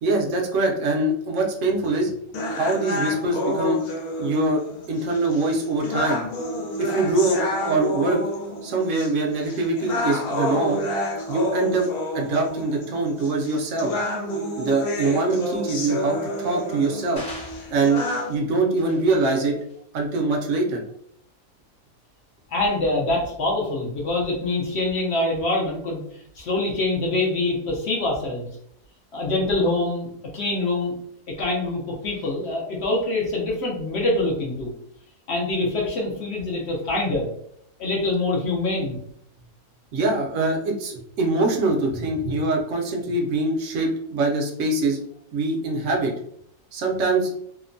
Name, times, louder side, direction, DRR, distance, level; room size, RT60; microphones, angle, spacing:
voice 1, 0.0-2.1 2.6-3.8 4.2-4.6 4.9-6.2 6.8-8.2 8.6-10.8 11.3-11.9 12.1-13.9 14.6-17.2 17.7-19.5 19.9-20.8 39.9-45.0 45.3-46.1 46.7-47.3, right 2 dB, 65° right, 1 dB, 0.8 m, -23 dB
sound 1, 2.3-18.3, left 1 dB, 80° left, 1.2 m, -29 dB
sound 2, 17.2-18.4 18.8-19.0 19.6-19.7, left 1 dB, 25° left, 0.3 m, -40 dB
voice 2, 22.5-26.0 26.4-28.5 29.1-30.9 31.4-34.7 35.3-37.3 37.8-39.0, left 2 dB, 60° left, -2 dB, 0.7 m, -25 dB
2.8 x 2.1 x 2.5 m, 0.68 s
omnidirectional pair, 1.6 m